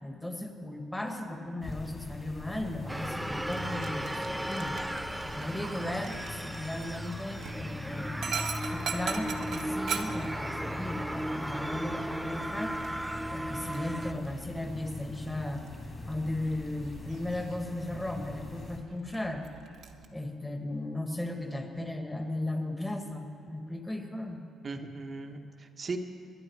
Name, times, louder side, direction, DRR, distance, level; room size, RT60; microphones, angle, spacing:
voice 1, 0.0-4.8 5.4-8.2 8.6-12.8 13.3-15.6 16.1-19.4 20.1-24.4, left 1 dB, 10° left, 4 dB, 1.7 m, -36 dB
sound 1, 1.6-18.8, left 2 dB, 30° left, 2.7 m, -43 dB
sound 2, 2.9-14.1, right 1 dB, 5° right, 0.5 m, -36 dB
Dog, 3.4-20.1, right 6 dB, 70° right, 1.2 m, -43 dB
voice 2, 24.6-26.0, right 4 dB, 40° right, 5 dB, 1.2 m, -38 dB
21.5 x 11.5 x 4.7 m, 2.5 s
cardioid pair, 90°, 0 cm